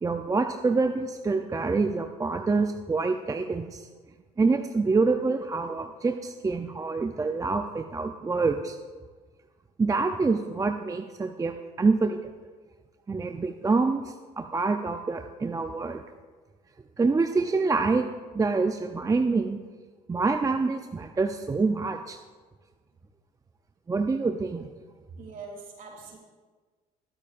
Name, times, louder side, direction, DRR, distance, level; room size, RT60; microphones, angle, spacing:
voice 1, 0.0-3.9 4.4-8.8 9.8-12.2 13.1-16.0 17.0-18.1 18.3-19.6 20.1-22.2 23.9-24.7, right 4 dB, 20° right, 6 dB, 0.6 m, -26 dB
voice 2, 24.9-26.2, right 4 dB, 55° right, 0 dB, 3.2 m, -43 dB
21.0 x 8.5 x 2.6 m, 1.4 s
supercardioid pair, 80°, 18 cm